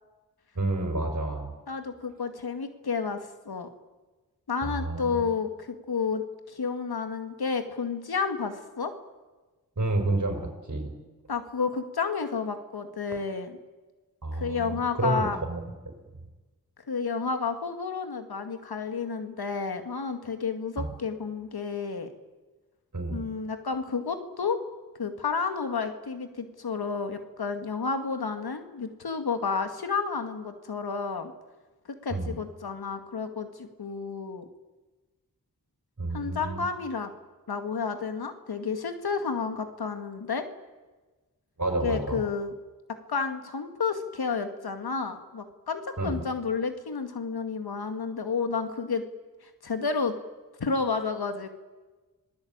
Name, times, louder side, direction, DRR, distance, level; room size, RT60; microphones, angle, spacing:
voice 1, 0.6-1.5 4.6-5.2 9.8-10.9 14.2-15.9 20.8-20.9 22.9-23.2 32.1-32.3 36.0-36.6 41.6-42.2 46.0-46.2, right 2 dB, 50° right, 3 dB, 5.3 m, -30 dB
voice 2, 1.7-3.2 3.5-3.7 4.5-8.9 11.3-13.6 14.3-15.4 16.9-22.1 23.1-24.6 25.0-31.3 32.0-34.5 36.1-37.1 37.5-40.4 41.8-42.5 43.1-49.0 49.6-50.1 50.6-51.5, left 5 dB, 85° left, 7 dB, 2.3 m, -31 dB
27.0 x 18.5 x 8.9 m, 1.2 s
cardioid pair, 45°, 37 cm